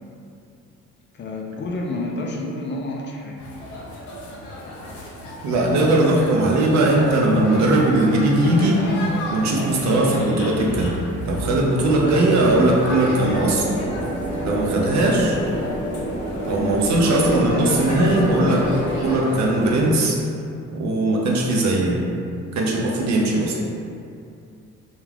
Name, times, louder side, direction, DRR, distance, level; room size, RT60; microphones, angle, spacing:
voice 1, 1.1-3.4, left 2 dB, 40° left, -1 dB, 0.4 m, -29 dB
sound 1, 3.4-19.8, left 1 dB, 85° left, 0.6 m, -33 dB
voice 2, 5.4-8.8 9.3-10.9 11.2-13.8 14.4-15.4 16.5-18.7 19.0-20.2 20.7-22.0 22.5-23.6, right 1 dB, 65° right, -2 dB, 0.6 m, -19 dB
sound 2, 13.3-19.2, right 1 dB, 15° right, 0.7 m, -28 dB
2.3 x 2.2 x 3.2 m, 2.5 s
cardioid pair, 90°, 30 cm